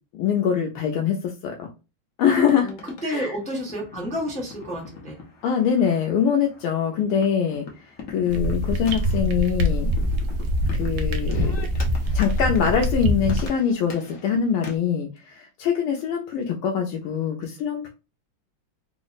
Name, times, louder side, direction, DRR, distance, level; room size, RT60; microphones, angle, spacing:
voice 1, 0.1-1.7 2.2-2.7 3.0-3.3 5.4-7.6 8.1-9.9 10.7-11.5 12.1-17.9, left 7 dB, 85° left, 2 dB, 1.5 m, -23 dB
sound 1, 2.4-14.8, left 4 dB, 60° left, 0.8 m, -43 dB
voice 2, 2.5-5.2, equal, 10° left, -2 dB, 0.4 m, -31 dB
sound 2, 8.3-13.5, equal, 70° right, 0.9 m, -24 dB
3.8 x 2.0 x 4.0 m, 0.29 s
omnidirectional pair, 2.4 m